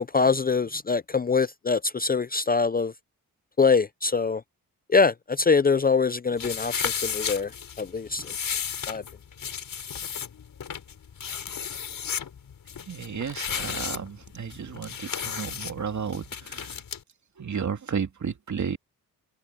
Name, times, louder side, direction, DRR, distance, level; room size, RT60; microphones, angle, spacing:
voice 1, 0.0-2.9 3.6-4.4 4.9-7.5 7.8-8.3 8.9-9.0, left 4 dB, 25° left, 0.6 m, -23 dB
sound 1, 6.4-17.0, left 7 dB, 65° left, 5.0 m, -34 dB
voice 2, 12.9-16.8 17.4-18.8, right 6 dB, 50° right, 2.7 m, -33 dB
cardioid pair, 75°, 36 cm